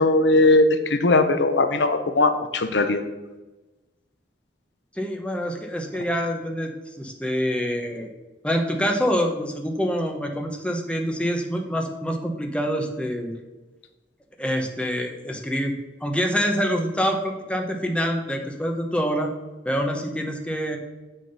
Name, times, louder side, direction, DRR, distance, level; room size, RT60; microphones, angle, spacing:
voice 1, 0.0-3.0, left 2 dB, 70° left, 9 dB, 0.7 m, -19 dB
voice 2, 4.9-6.7 7.0-8.1 8.4-13.4 14.4-15.7 16.0-19.3 19.6-20.8, equal, 5° left, 3 dB, 1.0 m, -26 dB
7.6 x 6.6 x 5.5 m, 1.1 s
head